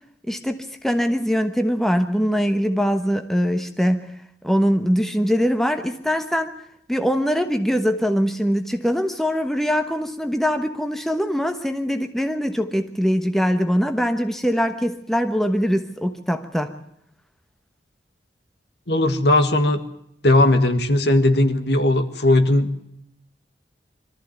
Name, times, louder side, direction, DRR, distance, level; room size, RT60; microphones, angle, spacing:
voice 1, 0.3-4.1 4.4-6.5 6.9-16.7, equal, ahead, 7 dB, 1.1 m, -22 dB
voice 2, 18.9-19.8 20.2-22.7, left 1 dB, 70° left, 9 dB, 1.8 m, -18 dB
22.5 x 14.0 x 9.2 m, 0.76 s
head